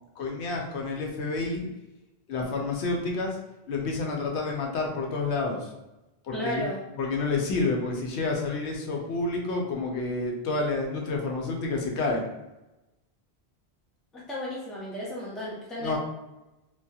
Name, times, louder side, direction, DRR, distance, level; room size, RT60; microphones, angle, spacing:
voice 1, 0.2-1.7 2.3-3.4 3.7-5.7 6.2-6.7 7.0-12.2 15.8-16.0, left 3 dB, 90° left, 0 dB, 0.9 m, -29 dB
voice 2, 6.3-6.8 14.1-16.0, left 1 dB, ahead, -5 dB, 0.4 m, -34 dB
2.6 x 2.4 x 2.3 m, 1.0 s
omnidirectional pair, 1.1 m